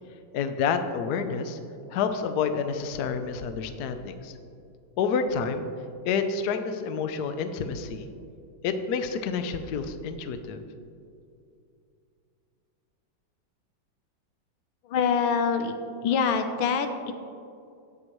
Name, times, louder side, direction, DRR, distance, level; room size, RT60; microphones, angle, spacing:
voice 1, 0.3-1.6 1.9-4.3 5.0-5.7 6.1-8.1 8.6-10.6, left 6 dB, 65° left, 8 dB, 1.0 m, -29 dB
voice 2, 14.9-15.7 16.0-17.1, left 6 dB, 90° left, 7 dB, 1.5 m, -25 dB
17.5 x 6.3 x 3.1 m, 2.5 s
omnidirectional pair, 2.1 m